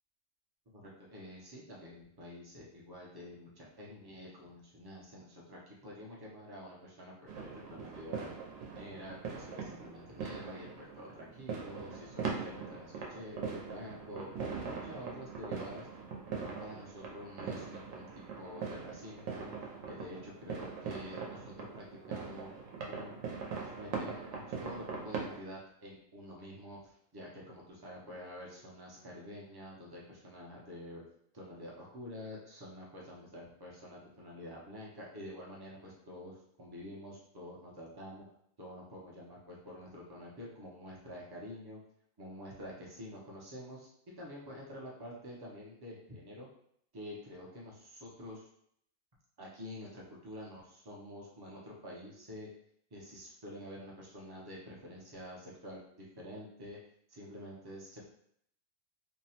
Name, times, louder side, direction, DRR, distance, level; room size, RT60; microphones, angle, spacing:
voice 1, 0.7-8.3 8.7-15.9 16.3-19.5 19.8-22.5 22.9-23.2 23.8-31.0 31.3-38.2 38.6-41.8 42.2-43.9 44.2-46.5 46.9-48.5 49.4-52.5 52.9-56.8 57.1-58.0, equal, 40° right, -4 dB, 0.3 m, -48 dB
sound 1, 7.3-25.4, right 5 dB, 90° right, 1.0 m, -41 dB
2.7 x 2.0 x 2.8 m, 0.68 s
omnidirectional pair, 1.3 m